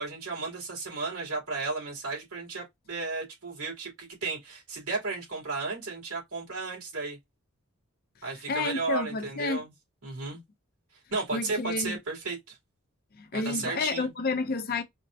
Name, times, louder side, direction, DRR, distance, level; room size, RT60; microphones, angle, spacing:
voice 1, 0.0-7.2 8.2-9.7 10.0-10.4 11.1-12.6 13.3-14.1, right 3 dB, 85° right, 2.6 m, -34 dB
voice 2, 8.5-9.7 11.3-12.0 13.2-14.8, left 3 dB, 45° left, 0.5 m, -30 dB
4.4 x 2.0 x 2.6 m
head